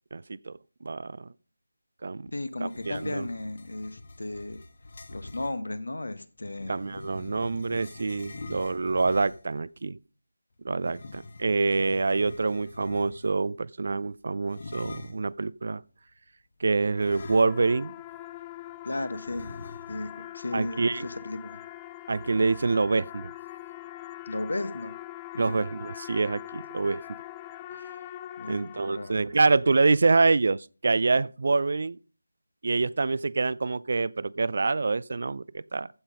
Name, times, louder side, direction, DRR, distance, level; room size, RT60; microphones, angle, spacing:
voice 1, 0.1-1.3 2.0-2.3 2.6-3.3 6.7-10.0 10.6-15.8 16.6-17.9 20.5-21.1 22.1-23.3 25.4-27.0 27.7-27.9 28.5-32.0 32.6-35.9, right 3 dB, 50° right, 0.4 m, -26 dB
voice 2, 2.3-4.6 5.1-6.8 18.8-19.5 19.9-21.6 24.3-24.9 25.3-25.6 28.4-29.2, left 2 dB, 65° left, 1.2 m, -35 dB
sound 1, 2.6-5.6 6.4-9.6 10.8-13.4 14.5-15.3 17.0-17.9 18.2-18.3 19.3-20.1, left 2 dB, 45° left, 1.4 m, -44 dB
sound 2, 16.8-29.5, left 14 dB, 15° left, 0.4 m, -43 dB
15.0 x 5.6 x 5.1 m
figure-of-eight pair, 160°, 0 cm